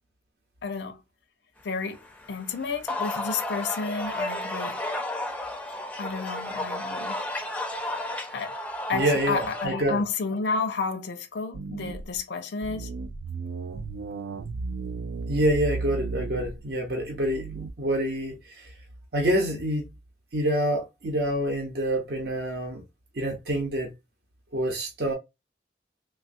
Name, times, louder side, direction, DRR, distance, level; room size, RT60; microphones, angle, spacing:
voice 1, 0.6-1.0 1.6-2.0 2.3-4.8 6.0-7.2 8.3-8.6 8.9-12.9, left 4 dB, 85° left, 0.5 m, -31 dB
sound 1, 1.9-9.7, left 1 dB, 10° left, 0.4 m, -33 dB
voice 2, 8.9-10.0 15.3-18.7 19.1-19.9 20.3-22.8 23.1-23.9 24.5-25.1, right 1 dB, 65° right, 0.7 m, -27 dB
sound 2, 11.5-12.2 12.6-17.7, right 4 dB, 90° right, 0.4 m, -35 dB
3.3 x 2.4 x 2.5 m
head